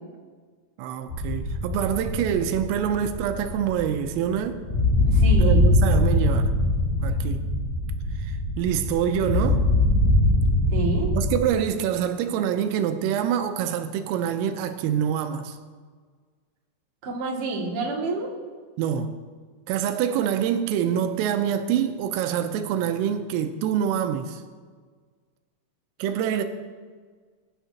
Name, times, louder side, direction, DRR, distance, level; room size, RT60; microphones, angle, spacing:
voice 1, 0.8-4.6 5.4-6.5 7.0-7.4 8.2-9.6 11.1-15.6 18.8-19.1 19.7-24.4 26.0-26.4, right 9 dB, 85° right, 3.3 m, -26 dB
sound 1, 1.1-11.4, left 1 dB, 45° left, 4.3 m, -22 dB
voice 2, 5.1-5.7 10.7-11.1 17.0-18.3, right 3 dB, 45° right, 2.0 m, -28 dB
21.5 x 11.0 x 2.9 m
omnidirectional pair, 5.8 m